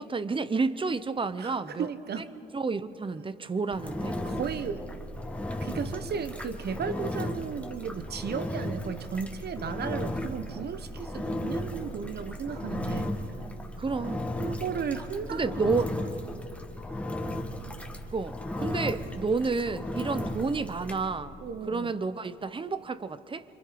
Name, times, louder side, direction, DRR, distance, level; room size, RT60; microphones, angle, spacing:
voice 1, 0.0-1.9 2.5-4.2 13.8-14.3 15.3-15.9 18.1-21.4 21.7-23.4, right 4 dB, 25° right, 14 dB, 0.8 m, -30 dB
voice 2, 1.4-2.3 4.2-4.8 5.6-13.1 14.4-15.6 18.8-19.0 20.1-20.3 21.4-22.0, right 6 dB, 55° right, 11 dB, 1.1 m, -35 dB
Engine, 3.7-21.0, left 1 dB, 5° left, 1.8 m, -35 dB
26.5 x 24.5 x 5.1 m, 2.9 s
cardioid pair, 90°, 20 cm